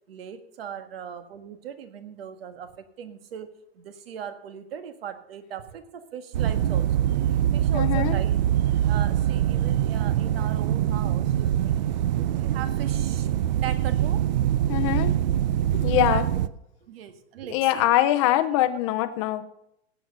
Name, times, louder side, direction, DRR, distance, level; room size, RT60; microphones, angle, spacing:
voice 1, 0.1-7.1 7.5-8.4 8.9-13.3 13.6-14.3 15.8-16.2 16.8-17.9, right 9 dB, 65° right, 9 dB, 1.7 m, -38 dB
sound 1, 6.3-16.5, right 11 dB, 45° right, 0.5 m, -24 dB
voice 2, 7.7-8.2 14.7-15.1 15.7-16.3 17.5-19.4, left 13 dB, 30° left, 11 dB, 0.7 m, -23 dB
17.0 x 7.8 x 5.2 m, 0.81 s
supercardioid pair, 165°, 32 cm